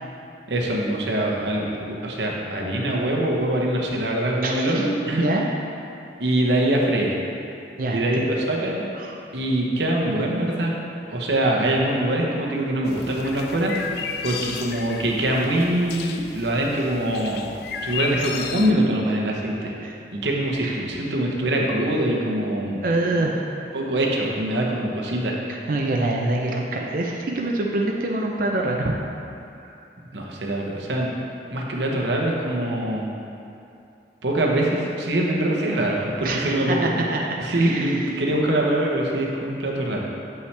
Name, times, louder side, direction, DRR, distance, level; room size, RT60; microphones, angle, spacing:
voice 1, 0.5-5.2 6.2-7.1 7.9-8.9 9.3-10.7 11.1-13.7 14.2-17.5 17.8-19.7 20.1-22.8 23.2-23.3 23.7-25.4 30.1-31.1 31.5-33.1 34.2-36.9 37.4-40.0, right 1 dB, 80° right, -2 dB, 1.0 m, -23 dB
voice 2, 4.4-4.9 5.1-5.4 7.8-8.3 9.0-9.2 19.8-19.9 20.6-20.8 22.8-23.7 25.5-29.0 29.6-29.8 36.2-37.2 37.5-38.2, right 2 dB, 50° right, -1 dB, 0.5 m, -25 dB
sound 1, 12.9-18.7, left 6 dB, 60° left, 0.4 m, -34 dB
7.8 x 5.6 x 3.3 m, 2.7 s
head